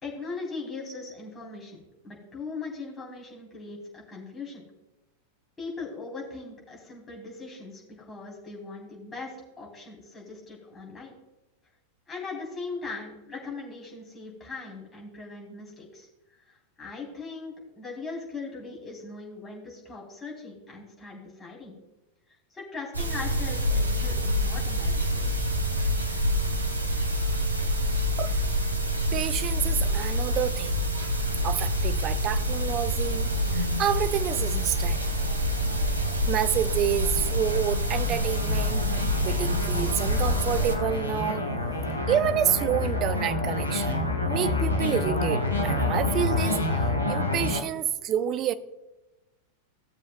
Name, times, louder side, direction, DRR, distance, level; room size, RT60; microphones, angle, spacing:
voice 1, 0.0-4.6 5.6-11.1 12.1-21.8 22.3-25.3, left 3 dB, 15° left, 3.5 m, -40 dB
sound 1, 22.9-40.7, equal, 80° right, 1.1 m, -27 dB
voice 2, 29.1-31.1 31.4-35.0 36.1-41.4 42.1-46.6 47.1-48.5, right 10 dB, 35° right, 0.5 m, -29 dB
sound 2, 31.3-47.6, left 2 dB, 80° left, 1.1 m, -30 dB
16.0 x 7.3 x 2.2 m
figure-of-eight pair, 90°, 0 cm